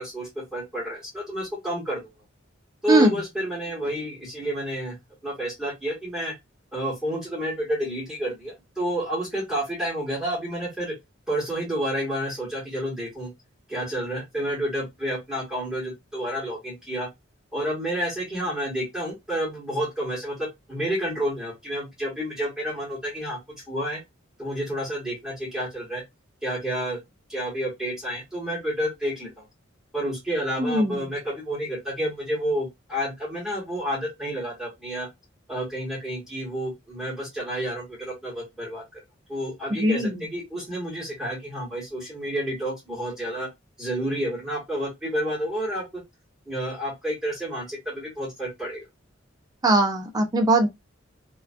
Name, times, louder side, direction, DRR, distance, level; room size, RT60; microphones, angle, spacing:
voice 1, 0.0-2.1 2.8-5.0 5.2-6.3 6.7-10.9 11.3-13.3 13.7-17.1 17.5-23.4 23.7-24.0 24.4-26.0 26.4-27.0 27.3-29.4 29.9-35.1 35.5-39.0 39.3-43.5 43.8-45.8 46.5-48.9, right 1 dB, 5° right, 1.1 m, -30 dB
voice 2, 30.6-31.0 39.7-40.2 49.6-50.7, right 1 dB, 20° right, 0.4 m, -20 dB
2.3 x 2.3 x 2.5 m
head